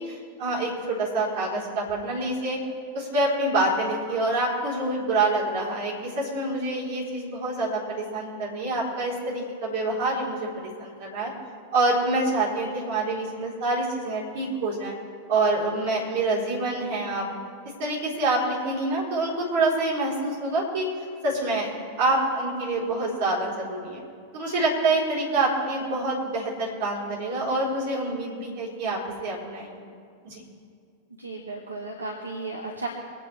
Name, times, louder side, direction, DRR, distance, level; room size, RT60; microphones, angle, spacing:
voice 1, 0.0-2.6 2.9-11.3 11.7-14.9 15.3-17.2 17.8-20.9 21.2-24.0 24.3-29.8 30.2-30.4, right 2 dB, 50° right, -5 dB, 4.2 m, -26 dB
voice 2, 31.2-32.9, right 3 dB, 80° right, 0 dB, 1.4 m, -34 dB
24.5 x 9.4 x 3.5 m, 2.2 s
figure-of-eight pair, 90°, 0 cm